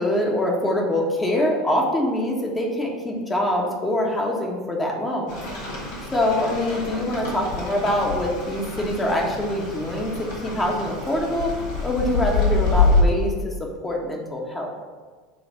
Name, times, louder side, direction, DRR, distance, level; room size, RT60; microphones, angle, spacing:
voice 1, 0.0-5.4 6.1-11.5 11.8-13.5 13.8-14.7, left 1 dB, 15° left, -1 dB, 1.3 m, -24 dB
Rain, 5.3-13.0, left 4 dB, 65° left, 1.7 m, -26 dB
7.0 x 3.2 x 4.4 m, 1.5 s
hypercardioid pair, 75°, 0 cm